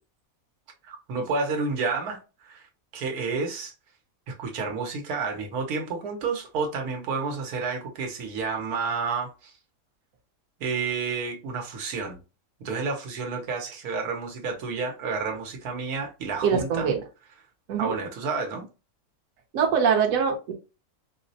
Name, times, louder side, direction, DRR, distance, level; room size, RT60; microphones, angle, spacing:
voice 1, 0.8-2.7 2.9-3.7 4.3-9.5 10.6-12.2 12.6-16.9 17.8-18.7, right 4 dB, 85° right, 1.3 m, -30 dB
voice 2, 16.4-17.0 17.7-18.0 19.5-20.5, right 6 dB, 65° right, 1.2 m, -23 dB
4.3 x 2.1 x 2.6 m
omnidirectional pair, 1.5 m